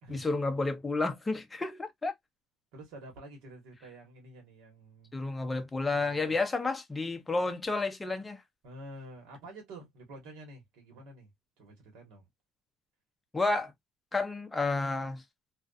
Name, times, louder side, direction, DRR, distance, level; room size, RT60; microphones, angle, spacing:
voice 1, 0.1-2.1 5.1-8.4 13.3-13.7 14.1-15.2, left 3 dB, 15° left, 0.5 m, -31 dB
voice 2, 2.7-5.4 5.8-6.3 8.6-11.3 11.6-12.2, right 1 dB, 80° right, 1.2 m, -49 dB
2.4 x 2.3 x 2.4 m
cardioid pair, 130°, 0 cm